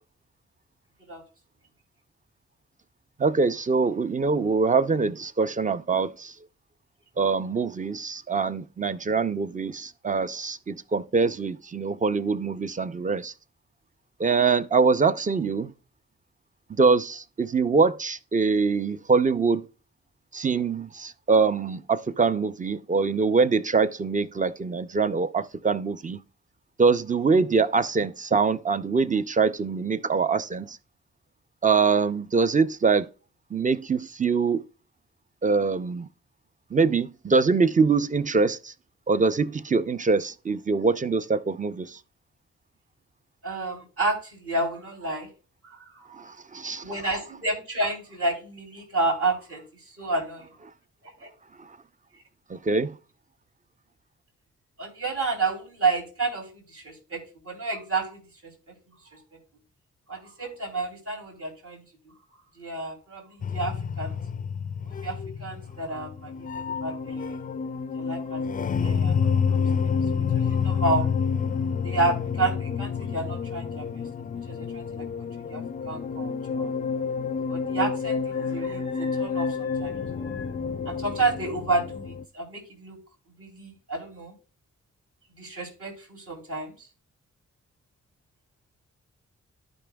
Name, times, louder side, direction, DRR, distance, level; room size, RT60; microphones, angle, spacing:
voice 1, 3.2-6.3 7.2-13.3 14.2-15.7 16.7-19.6 20.3-26.2 26.8-30.8 31.6-33.1 33.5-34.6 35.4-36.1 36.7-38.7 39.1-42.0 46.2-46.8 52.5-52.9, right 4 dB, 25° right, 0.6 m, -24 dB
voice 2, 43.4-45.3 45.6-46.2 46.8-50.5 51.2-51.3 54.8-58.7 59.1-59.2 60.1-62.1 62.5-64.1 64.8-67.4 67.9-69.7 70.1-71.1 71.8-76.7 77.5-80.5 80.8-83.0 83.4-84.3 85.3-86.9, right 3 dB, 50° right, 3.1 m, -31 dB
sound 1, 63.4-82.2, left 6 dB, 30° left, 0.4 m, -29 dB
12.0 x 5.3 x 2.3 m
cardioid pair, 55°, 29 cm